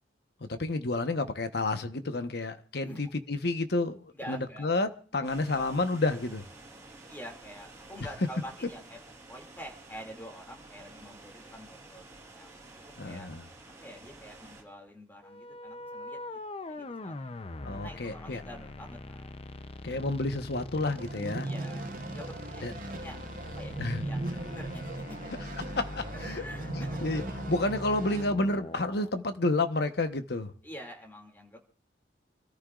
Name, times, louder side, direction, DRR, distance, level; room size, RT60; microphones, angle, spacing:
voice 1, 0.5-6.4 13.0-13.4 17.6-18.4 19.8-21.5 22.6-22.7 23.8-24.0 25.8-26.4 26.7-30.5, left 2 dB, 60° left, 1.1 m, -30 dB
voice 2, 4.1-4.7 5.5-5.7 7.1-9.0 9.3-13.3 13.8-16.4 16.7-17.3 17.7-19.4 21.4-23.2 23.6-25.3 26.1-27.2 30.6-31.6, equal, 10° left, 2.5 m, -47 dB
sound 1, 5.2-14.6, right 2 dB, 15° right, 5.5 m, -51 dB
sound 2, 15.2-29.1, left 2 dB, 30° left, 0.6 m, -43 dB
sound 3, 21.0-28.2, right 2 dB, 50° right, 0.9 m, -38 dB
28.5 x 14.0 x 2.5 m
head